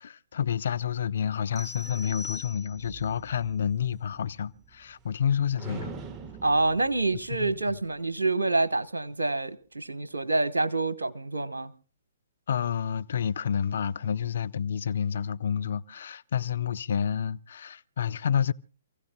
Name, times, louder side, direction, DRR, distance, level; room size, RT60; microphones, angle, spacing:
voice 1, 0.0-5.9 7.3-7.5 12.5-18.5, left 8 dB, 65° left, 0.7 m, -29 dB
sound 1, 1.6-3.1, left 4 dB, 5° right, 1.9 m, -41 dB
sound 2, 1.8-5.3 5.6-8.3, right 4 dB, 25° right, 1.3 m, -45 dB
voice 2, 6.4-11.7, right 2 dB, 85° right, 1.1 m, -27 dB
28.0 x 16.0 x 2.2 m
hypercardioid pair, 130°, 0 cm